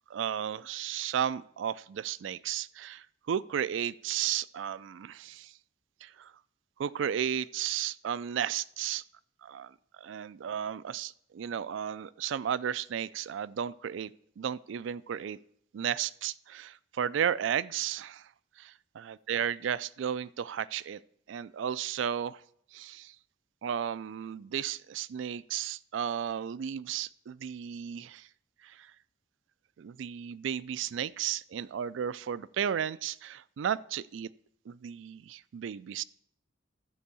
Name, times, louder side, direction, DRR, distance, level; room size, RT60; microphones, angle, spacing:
voice 1, 0.1-5.6 6.0-6.3 6.8-9.0 9.4-15.4 15.7-18.3 18.6-21.0 21.3-22.4 22.7-23.2 23.6-28.3 28.6-28.9 29.8-34.3 34.7-36.0, right 9 dB, 65° right, 19 dB, 0.3 m, -34 dB
13.0 x 4.6 x 6.9 m, 0.69 s
head